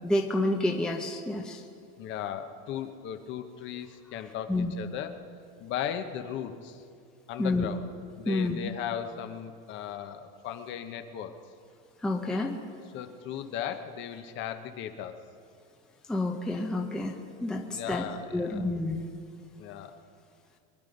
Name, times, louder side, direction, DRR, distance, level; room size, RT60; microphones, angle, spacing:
voice 1, 0.0-1.6 4.5-4.7 7.4-7.7 8.3-8.6 12.0-12.5 16.1-17.1 17.4-18.0 18.3-19.1, left 2 dB, ahead, 2 dB, 0.7 m, -29 dB
voice 2, 2.0-5.2 5.6-6.8 7.3-7.9 8.2-11.3 12.9-15.2 17.7-18.7 19.6-19.9, left 9 dB, 35° left, 8 dB, 1.0 m, -37 dB
24.0 x 10.5 x 5.2 m, 2.3 s
supercardioid pair, 155°, 33 cm